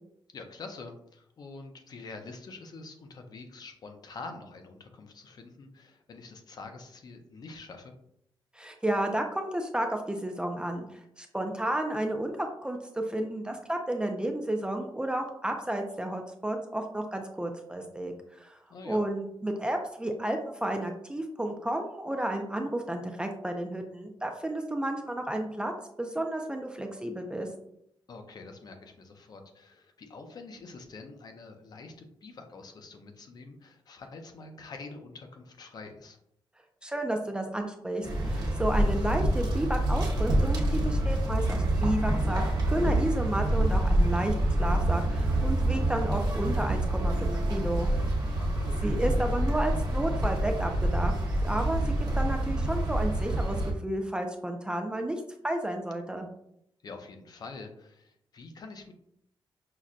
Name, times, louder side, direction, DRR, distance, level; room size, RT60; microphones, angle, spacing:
voice 1, 0.3-7.9 18.7-19.0 28.1-36.2 48.3-48.8 56.8-58.9, left 3 dB, 45° left, 5 dB, 0.5 m, -46 dB
voice 2, 8.5-18.6 18.8-25.7 26.0-27.5 36.8-42.4 42.7-47.9 48.8-51.1 51.4-53.6 53.8-56.3, right 1 dB, 10° right, 3 dB, 0.3 m, -32 dB
sound 1, 38.0-53.7, right 1 dB, 50° right, 1.0 m, -27 dB
5.7 x 2.1 x 2.4 m, 0.74 s
wide cardioid pair, 155°, 9 cm